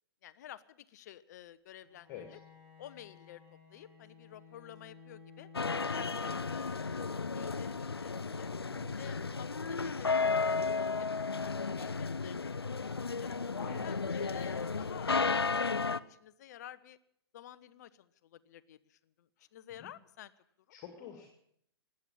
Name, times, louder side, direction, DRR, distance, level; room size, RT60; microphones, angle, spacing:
voice 1, 0.2-2.4 2.8-3.4 3.7-5.5 5.9-8.5 9.0-12.5 12.9-13.3 13.8-17.0 17.3-20.3 20.7-20.8, left 12 dB, 45° left, 16 dB, 0.7 m, -51 dB
Bowed string instrument, 1.8-7.2, left 5 dB, 20° right, 5.7 m, -56 dB
sound 1, 5.5-16.0, left 4 dB, 80° left, 0.6 m, -33 dB
voice 2, 20.7-21.3, left 8 dB, 30° left, 4 dB, 2.2 m, -47 dB
20.0 x 8.7 x 7.4 m, 0.71 s
figure-of-eight pair, 110°, 13 cm